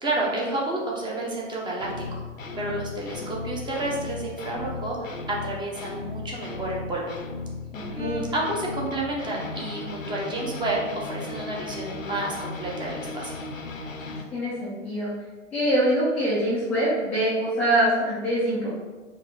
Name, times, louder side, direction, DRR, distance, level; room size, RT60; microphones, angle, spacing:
voice 1, 0.0-1.9 2.2-2.3 2.6-7.1 8.0-13.3, right 2 dB, 10° right, -3 dB, 0.7 m, -30 dB
sound 1, 1.8-14.2, left 3 dB, 90° left, 0.6 m, -36 dB
voice 2, 7.7-8.2 14.3-15.1 15.5-18.7, right 1 dB, 5° left, -9 dB, 0.3 m, -24 dB
4.0 x 2.7 x 3.9 m, 1.3 s
figure-of-eight pair, 100°, 39 cm